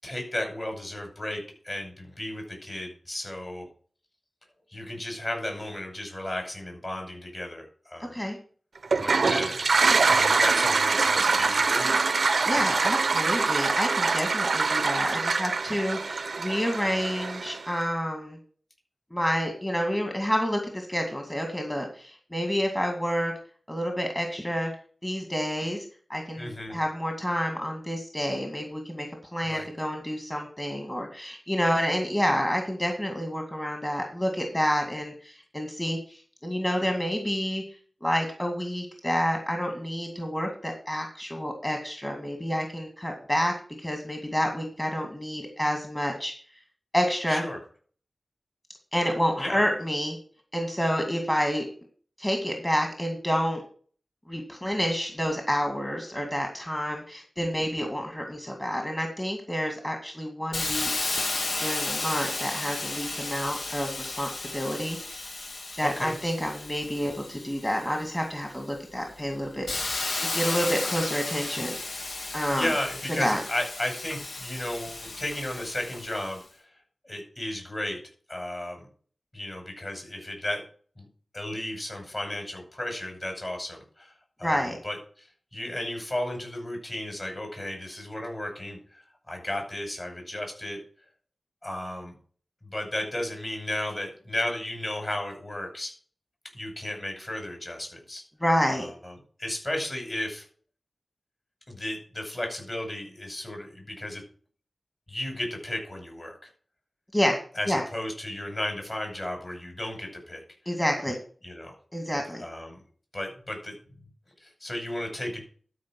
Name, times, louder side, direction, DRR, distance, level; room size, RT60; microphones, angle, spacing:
voice 1, 0.0-3.7 4.7-8.1 9.0-9.8 10.1-11.9 26.4-26.8 29.4-29.7 47.3-47.6 49.4-49.6 65.8-66.2 72.5-76.4 77.0-78.0 78.3-78.8 79.3-80.6 81.0-81.1 81.3-84.1 84.4-85.3 85.5-90.8 91.6-92.2 92.6-95.9 96.5-98.2 98.8-100.5 101.7-104.2 105.1-106.5 107.6-110.4 111.4-111.7 112.4-112.8 113.1-113.8 114.4-115.4, left 1 dB, 35° left, 2 dB, 5.9 m, -34 dB
Toilet flush, 8.8-17.7, right 4 dB, 85° right, 0.6 m, -24 dB
voice 2, 12.4-18.4 19.1-23.3 23.7-24.7 25.0-25.8 26.1-37.6 38.0-43.5 43.8-46.3 46.9-47.4 48.9-50.2 50.5-51.7 52.2-53.6 54.3-60.9 61.6-65.0 65.7-69.7 70.3-71.8 72.3-72.7 73.2-73.4 84.4-84.8 98.4-98.9 107.1-107.4 107.7-107.8 110.7-111.2 111.9-112.4, equal, 15° left, 3 dB, 2.3 m, -29 dB
Hiss, 60.5-68.1 68.6-76.4, left 2 dB, 80° left, 1.5 m, -34 dB
12.5 x 5.2 x 6.2 m, 0.44 s
wide cardioid pair, 85°, 0 cm